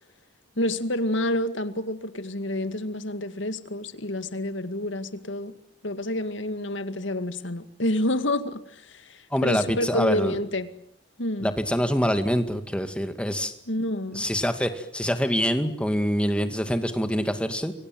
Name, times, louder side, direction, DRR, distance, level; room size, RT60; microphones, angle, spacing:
voice 1, 0.6-5.5 5.8-10.7 11.2-11.5 13.7-14.2, left 1 dB, 75° left, 10 dB, 2.2 m, -28 dB
voice 2, 9.3-10.4 11.4-13.5 14.1-17.7, equal, 5° left, 8 dB, 2.2 m, -25 dB
29.5 x 24.0 x 7.9 m, 0.66 s
head